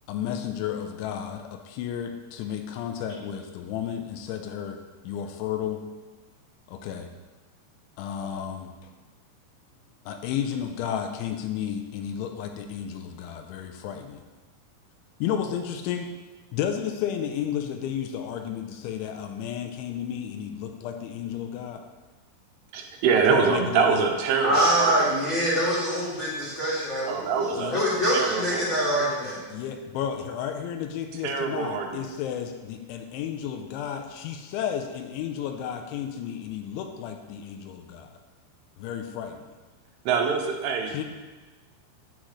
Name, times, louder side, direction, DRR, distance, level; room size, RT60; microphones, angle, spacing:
voice 1, 0.1-4.8 5.0-5.8 6.7-7.1 8.0-8.7 10.1-14.2 15.2-16.1 16.5-21.8 23.3-24.0 27.6-27.8 29.5-38.1 38.8-39.4 40.9-41.0, left 9 dB, 85° left, 5 dB, 3.0 m, -32 dB
voice 2, 22.7-24.9 27.1-27.7 28.1-28.7 31.2-32.1 40.1-41.0, right 5 dB, 85° right, 3 dB, 3.5 m, -25 dB
voice 3, 24.4-29.4, right 1 dB, 25° left, -10 dB, 1.8 m, -25 dB
10.0 x 8.7 x 3.2 m, 1.3 s
omnidirectional pair, 5.5 m